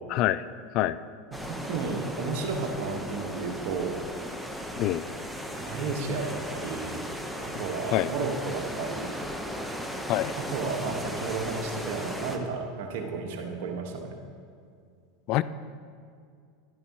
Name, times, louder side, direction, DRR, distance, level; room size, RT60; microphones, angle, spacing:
voice 1, 0.1-0.5 0.7-1.0 4.8-5.0 7.9-8.1 10.1-10.3 15.3-15.4, left 15 dB, 50° left, 15 dB, 0.3 m, -25 dB
sound 1, 1.3-12.4, equal, ahead, 0.9 m, -36 dB
voice 2, 1.3-4.0 5.6-7.0 7.4-9.1 10.4-14.1, right 4 dB, 60° right, 2 dB, 1.4 m, -33 dB
11.0 x 11.0 x 3.0 m, 2.3 s
hypercardioid pair, 85°, 0 cm